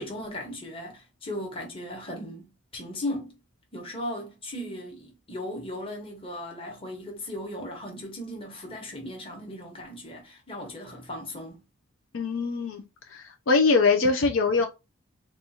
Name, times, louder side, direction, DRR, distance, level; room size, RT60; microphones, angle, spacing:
voice 1, 0.0-3.4 3.7-11.6, left 1 dB, 25° left, 1.2 m, -37 dB
voice 2, 12.1-12.8 13.1-14.7, left 4 dB, 60° left, 0.5 m, -22 dB
4.0 x 2.4 x 2.7 m
head